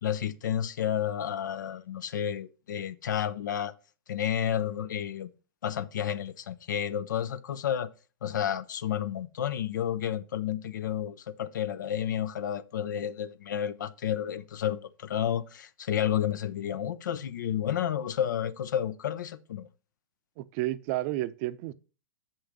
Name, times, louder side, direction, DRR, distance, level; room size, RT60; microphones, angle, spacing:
voice 1, 0.0-3.7 4.1-5.3 5.6-7.9 8.2-19.7, left 9 dB, 70° left, 0.7 m, -31 dB
voice 2, 20.4-21.7, right 16 dB, 45° right, 0.6 m, -31 dB
6.9 x 5.7 x 5.2 m
hypercardioid pair, 100°, 10 cm